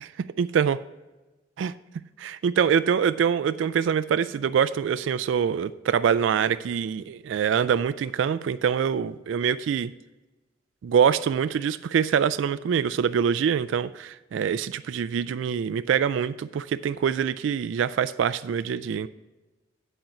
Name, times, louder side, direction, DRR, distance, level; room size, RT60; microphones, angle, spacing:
voice 1, 0.4-0.8 1.6-1.7 2.2-9.9 10.8-19.1, right 7 dB, 90° right, 14 dB, 0.3 m, -24 dB
10.5 x 4.4 x 5.8 m, 1.1 s
head